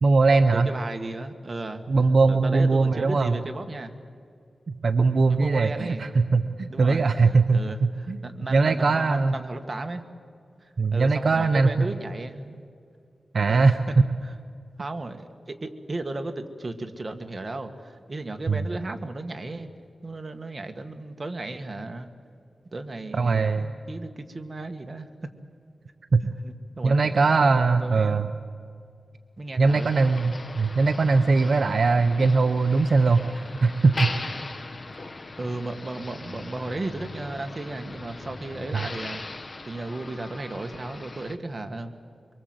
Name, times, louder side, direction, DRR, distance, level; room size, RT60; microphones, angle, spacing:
voice 1, 0.0-0.7 1.9-3.3 4.7-8.2 8.5-9.3 10.8-11.9 13.3-13.8 18.5-18.7 23.1-23.7 26.1-26.2 26.8-28.3 29.6-34.1 38.7-38.8, right 4 dB, 65° right, 8 dB, 0.8 m, -21 dB
voice 2, 0.5-1.8 2.3-4.0 5.3-6.0 6.7-7.1 7.5-10.0 10.6-12.7 13.5-13.9 14.2-14.4 14.8-19.7 20.0-22.1 22.7-25.1 26.4-28.2 29.4-29.9 35.4-41.9, right 2 dB, 35° right, 6 dB, 1.8 m, -35 dB
Motor vehicle (road), 29.7-41.4, left 2 dB, 40° left, 1.3 m, -39 dB
24.0 x 24.0 x 8.0 m, 2.3 s
wide cardioid pair, 85°, 0 cm